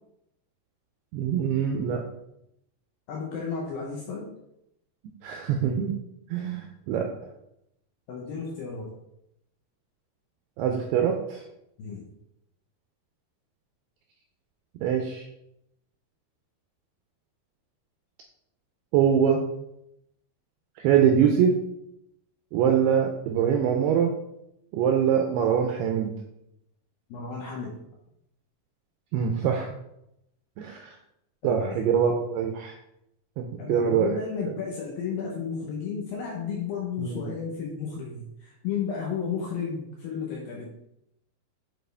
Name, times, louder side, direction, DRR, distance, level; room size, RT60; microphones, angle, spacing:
voice 1, 1.1-2.0 5.2-5.9 6.3-7.1 10.6-11.4 14.8-15.3 18.9-19.4 20.8-21.6 22.5-24.1 24.7-26.2 29.1-29.7 30.6-31.0 31.4-32.7 33.4-34.1 34.5-34.6 37.0-37.3, right 8 dB, 85° right, 3 dB, 2.3 m, -24 dB
voice 2, 3.1-4.3 8.1-8.9 11.8-12.1 27.1-27.8 31.4-31.8 33.6-40.7, left 6 dB, 75° left, -2 dB, 2.2 m, -33 dB
9.1 x 4.2 x 3.4 m, 0.81 s
omnidirectional pair, 5.2 m